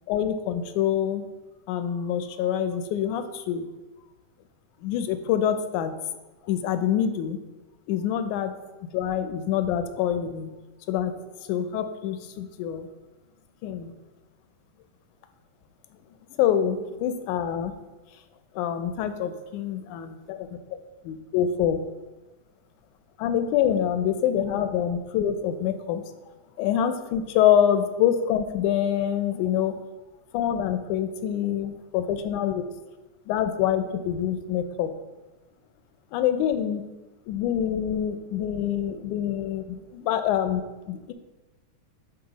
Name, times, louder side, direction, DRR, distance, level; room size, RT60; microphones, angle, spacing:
voice 1, 0.1-1.2 1.7-3.7 4.8-5.9 6.4-7.4 7.9-8.5 8.9-10.5 10.9-11.1 11.4-12.9 13.6-13.9 16.3-17.7 18.6-20.5 21.0-21.8 23.2-26.0 26.6-29.8 30.3-32.6 33.3-34.9 36.1-36.8 37.3-41.1, left 9 dB, 85° left, 10 dB, 2.0 m, -26 dB
10.5 x 4.6 x 4.0 m, 1.1 s
omnidirectional pair, 3.4 m